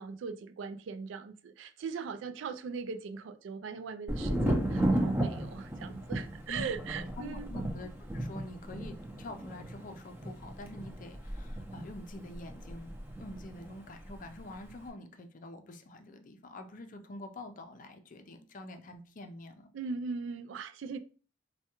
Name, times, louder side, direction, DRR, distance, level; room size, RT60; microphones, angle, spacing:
voice 1, 0.0-7.5 19.7-21.0, right 5 dB, 70° right, 0.3 m, -40 dB
Thunder, 4.1-13.7 14.0-14.7, right 1 dB, 10° right, 0.5 m, -34 dB
voice 2, 7.0-19.7, left 2 dB, 45° left, 0.5 m, -46 dB
4.5 x 2.2 x 2.8 m
head